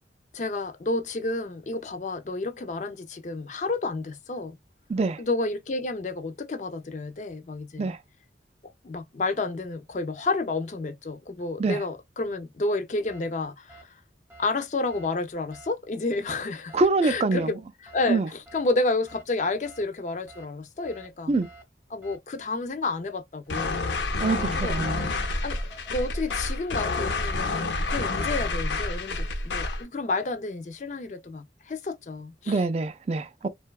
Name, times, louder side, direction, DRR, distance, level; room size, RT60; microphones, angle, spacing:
voice 1, 0.3-4.6 5.2-7.9 8.8-14.0 14.4-16.8 17.0-17.6 17.9-18.2 18.5-21.3 21.9-23.8 24.6-24.8 25.4-25.6 25.9-32.6, left 3 dB, 40° left, 0.4 m, -30 dB
voice 2, 4.9-5.2 7.8-8.0 11.6-11.8 16.7-17.6 18.1-18.3 21.3-21.5 24.2-25.1 32.5-33.5, right 3 dB, 35° right, 0.3 m, -25 dB
sound 1, 13.1-13.2 13.7-13.8 14.3-14.4 14.9-15.1 15.5-15.7 16.7-16.9 17.3-17.5 17.9-18.0 18.5-18.6 19.1-19.2 19.7-19.8 20.3-20.5 20.8-21.1 21.4-21.6 22.0-22.2 25.0-26.4, right 2 dB, 15° right, 0.8 m, -49 dB
sound 2, 23.5-29.8, left 3 dB, 85° left, 0.6 m, -28 dB
2.7 x 2.2 x 2.3 m
head